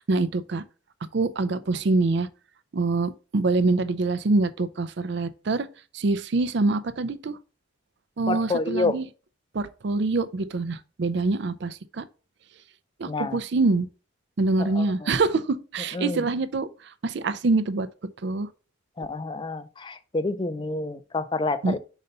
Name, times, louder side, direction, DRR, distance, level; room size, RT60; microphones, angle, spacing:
voice 1, 0.1-0.6 1.1-2.3 2.7-5.7 5.9-7.4 8.2-9.0 9.5-12.0 13.0-13.9 14.4-16.7 17.0-17.9 18.2-18.5 21.6-21.8, right 3 dB, 60° right, 0.5 m, -25 dB
voice 2, 8.3-9.0 13.1-13.4 14.6-15.1 15.9-16.2 19.0-21.8, left 3 dB, 25° left, 0.4 m, -28 dB
5.3 x 4.0 x 5.3 m
head